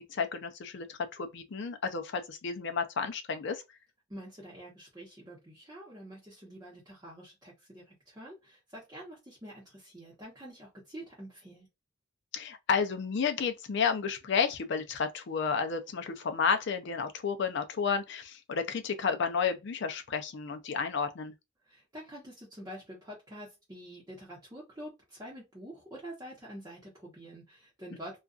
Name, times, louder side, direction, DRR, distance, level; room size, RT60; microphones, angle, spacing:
voice 1, 0.0-3.6 12.3-21.3, left 6 dB, 60° left, 0.5 m, -31 dB
voice 2, 4.1-11.7 21.7-28.2, equal, 20° right, 0.8 m, -47 dB
2.5 x 2.3 x 2.4 m
head